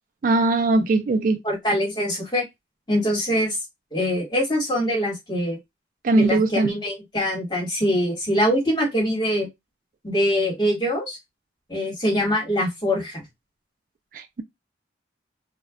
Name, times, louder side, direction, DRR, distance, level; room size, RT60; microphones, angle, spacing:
voice 1, 0.2-1.4 6.0-6.7 14.1-14.4, right 2 dB, 45° right, 0.3 m, -20 dB
voice 2, 1.4-2.5 2.9-3.6 3.9-5.6 6.1-9.5 10.0-11.2 11.7-13.2, equal, 25° left, 1.2 m, -23 dB
2.2 x 2.1 x 3.5 m
head